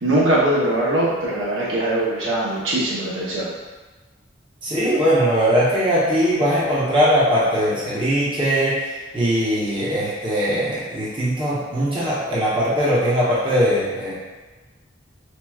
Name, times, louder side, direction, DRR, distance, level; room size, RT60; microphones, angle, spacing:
voice 1, 0.0-3.5, right 1 dB, 80° right, -6 dB, 0.8 m, -21 dB
voice 2, 4.6-14.1, equal, 25° right, -8 dB, 0.8 m, -20 dB
4.5 x 2.2 x 2.3 m, 1.2 s
head